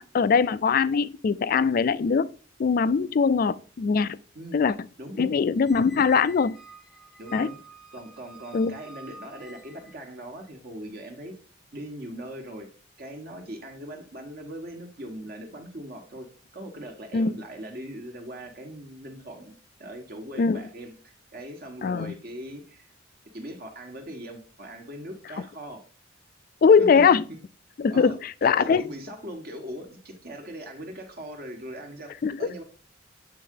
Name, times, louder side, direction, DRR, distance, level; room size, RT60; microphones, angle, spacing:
voice 1, 0.0-2.3 2.6-4.2 4.5-4.7 5.2-6.6 7.3-7.5 8.5-8.8 17.1-17.3 20.4-20.6 21.8-22.1 26.6-27.2 27.8-28.9 32.2-32.4, left 5 dB, 45° left, 0.3 m, -21 dB
voice 2, 5.0-5.3 7.2-7.6 7.9-11.3 11.7-12.7 13.0-16.3 16.5-22.9 23.3-25.8 26.8-27.2 27.9-28.2 28.4-32.1 32.4-32.6, right 1 dB, 50° right, 1.2 m, -40 dB
Squeak, 5.6-10.1, right 2 dB, ahead, 0.9 m, -48 dB
7.8 x 3.7 x 3.6 m
head